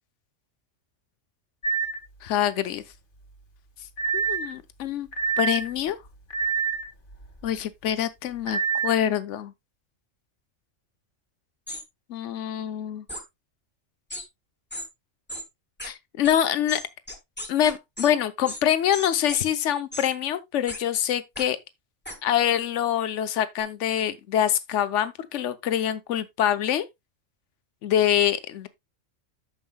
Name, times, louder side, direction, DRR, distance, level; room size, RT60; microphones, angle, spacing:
sound 1, 1.6-2.0 4.0-4.5 5.1-5.7 6.3-6.9 8.5-8.9, right 6 dB, 45° left, 1.7 m, -26 dB
voice 1, 2.2-2.8 4.1-5.1 5.4-6.0 7.4-9.5 12.1-13.0 15.8-16.8 17.5-21.6 22.2-26.8 27.8-28.7, left 10 dB, 70° left, 1.1 m, -25 dB
sound 2, 11.7-11.8 13.1-13.2 14.1-14.2 14.7-14.9 15.3-15.4 15.8-15.9 16.2-16.3 16.7-18.1 18.5-18.6 18.9-19.4 19.9-20.1 20.7-20.8 21.4-21.5 22.0-22.2, left 1 dB, 10° left, 1.5 m, -36 dB
13.5 x 5.6 x 2.2 m
omnidirectional pair, 1.3 m